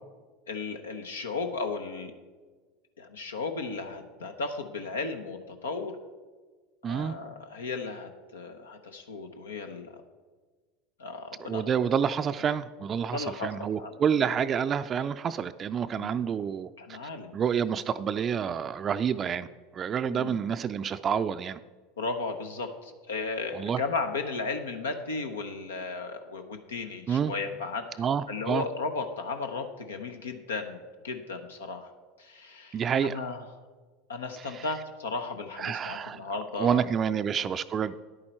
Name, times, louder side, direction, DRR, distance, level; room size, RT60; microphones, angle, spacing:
voice 1, 0.5-2.1 3.0-6.0 6.8-10.0 11.0-11.7 13.0-14.0 16.0-16.3 16.8-17.3 20.1-20.4 22.0-31.9 32.2-33.4 34.1-36.8 37.4-37.5, left 4 dB, 90° left, 6 dB, 0.8 m, -35 dB
voice 2, 6.8-7.2 11.4-16.7 17.3-19.5 19.7-21.6 23.5-23.8 27.1-27.3 28.0-28.6 32.7-33.2 34.5-34.6 35.6-36.2 36.6-37.9, right 7 dB, 35° right, 10 dB, 0.4 m, -28 dB
10.5 x 8.7 x 4.4 m, 1.4 s
hypercardioid pair, 85°, 0 cm